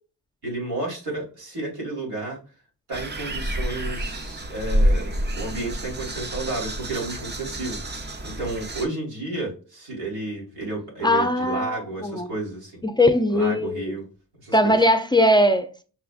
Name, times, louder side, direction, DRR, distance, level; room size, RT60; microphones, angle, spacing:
voice 1, 0.4-2.4 2.9-12.8 13.3-14.1 14.4-14.8, right 2 dB, 90° right, 2.1 m, -32 dB
sound 1, 2.9-8.9, equal, 30° right, 0.6 m, -28 dB
voice 2, 11.0-12.3 12.8-13.9 14.5-15.8, left 1 dB, 15° left, 0.4 m, -20 dB
5.7 x 2.3 x 2.4 m
cardioid pair, 70°, 37 cm